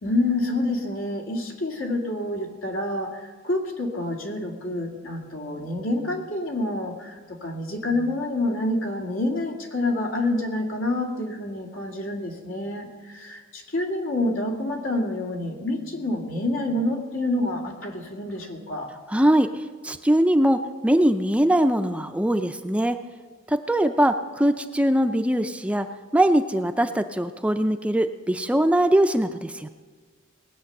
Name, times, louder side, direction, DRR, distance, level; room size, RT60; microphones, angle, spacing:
voice 1, 0.0-18.9, left 1 dB, 80° left, 2 dB, 2.3 m, -28 dB
voice 2, 19.1-23.0 23.5-25.9 26.1-29.7, right 1 dB, 5° right, 8 dB, 0.4 m, -21 dB
19.5 x 8.4 x 6.6 m, 1.4 s
head